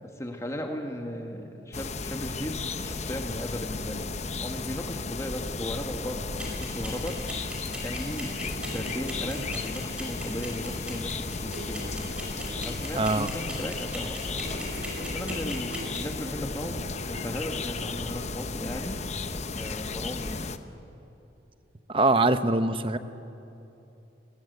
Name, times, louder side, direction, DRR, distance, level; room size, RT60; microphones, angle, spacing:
voice 1, 0.0-6.3 6.6-12.1 12.6-14.5 15.0-19.0 19.6-20.5, equal, 15° left, 3 dB, 1.7 m, -36 dB
sound 1, 1.7-20.6, left 3 dB, 35° left, 0.9 m, -34 dB
sound 2, 6.4-16.0, right 1 dB, 5° right, 5.4 m, -38 dB
sound 3, 7.8-19.6, right 1 dB, 75° right, 2.6 m, -45 dB
voice 2, 12.9-13.3 21.9-23.0, right 2 dB, 30° right, 11 dB, 0.9 m, -23 dB
29.5 x 21.5 x 8.1 m, 2.9 s
head